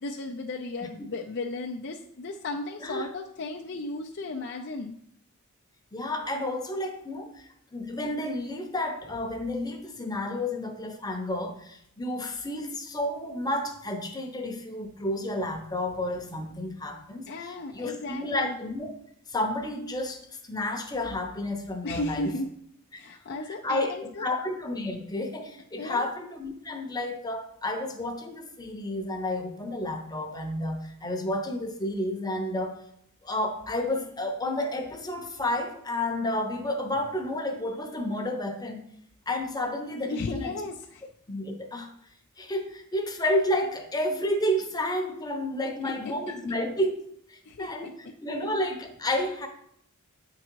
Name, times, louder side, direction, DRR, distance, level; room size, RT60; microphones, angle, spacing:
voice 1, 0.0-4.9 17.3-18.6 21.8-22.5 22.9-24.4 25.8-26.0 40.0-41.0 46.0-46.3 47.4-47.7, left 2 dB, 50° left, 1 dB, 0.5 m, -35 dB
voice 2, 5.9-7.4 7.7-18.9 19.3-22.3 23.3-23.9 24.2-32.8 33.2-38.8 39.3-40.5 41.3-41.9 42.4-49.5, left 1 dB, 15° left, 5 dB, 0.8 m, -31 dB
9.0 x 3.8 x 4.6 m, 0.69 s
head